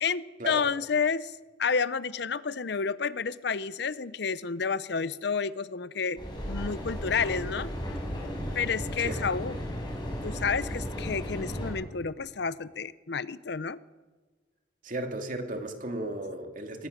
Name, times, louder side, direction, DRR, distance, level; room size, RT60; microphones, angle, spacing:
voice 1, 0.0-6.2 6.5-7.7 8.5-9.6 10.2-13.8, left 5 dB, 60° left, 17 dB, 0.7 m, -30 dB
Mechanical fan, 6.2-11.7, equal, 25° left, 6.5 m, -35 dB
voice 2, 14.8-16.9, right 1 dB, 45° right, 5 dB, 2.4 m, -35 dB
24.0 x 18.5 x 6.6 m, 1.3 s
head